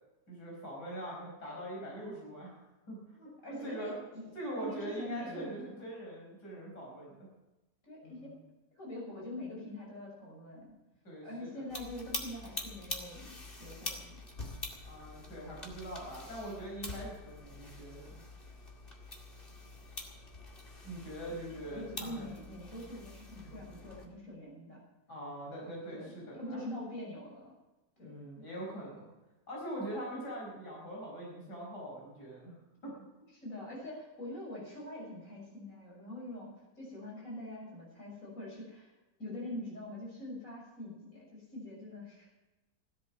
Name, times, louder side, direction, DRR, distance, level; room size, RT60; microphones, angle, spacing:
voice 1, 0.3-2.6 2.9-3.3 3.6-4.0 4.3-7.3 8.0-8.3 11.0-11.6 14.8-18.2 20.8-22.3 25.1-26.6 28.0-29.1 29.5-32.5 32.8-33.0, right 1 dB, 85° left, -3 dB, 5.4 m, -42 dB
voice 2, 3.4-4.3 4.6-5.8 7.8-8.4 8.7-10.7 11.2-14.0 21.5-24.8 25.9-27.5 28.0-28.1 33.3-36.5 36.8-38.9 39.2-42.3, left 1 dB, 50° left, -3 dB, 6.8 m, -44 dB
sound 1, 11.7-24.1, left 2 dB, 35° left, 2.4 m, -45 dB
16.5 x 13.0 x 6.0 m, 1.1 s
omnidirectional pair, 1.7 m